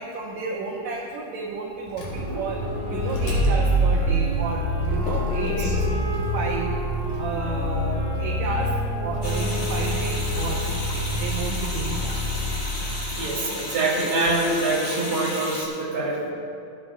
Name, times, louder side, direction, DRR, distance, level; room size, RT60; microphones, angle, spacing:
voice 1, 0.0-2.6 2.9-6.0 6.3-6.7 7.2-8.7 9.0-12.2, right 3 dB, 70° right, -3 dB, 2.2 m, -32 dB
Motor vehicle (road), 1.9-13.1, equal, 75° left, 3.9 m, -26 dB
Wind instrument woodwind instrument, 2.5-10.8, left 3 dB, 15° left, 2.6 m, -35 dB
voice 2, 5.0-6.4 13.2-16.3, right 2 dB, 45° right, -5 dB, 3.2 m, -26 dB
sound 1, 9.2-15.7, left 1 dB, 55° left, 0.6 m, -33 dB
17.5 x 12.0 x 2.4 m, 2.5 s
omnidirectional pair, 3.6 m